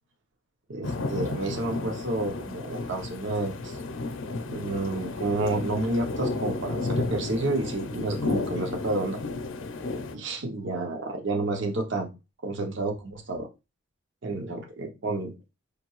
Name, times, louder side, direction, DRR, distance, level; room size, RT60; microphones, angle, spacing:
voice 1, 0.7-3.8 4.5-9.2 10.1-12.1 12.4-13.5 14.2-15.3, right 2 dB, 65° right, 3 dB, 0.7 m, -30 dB
sound 1, 0.8-10.1, left 3 dB, 75° left, 0.5 m, -32 dB
5.1 x 2.6 x 3.0 m, 0.26 s
head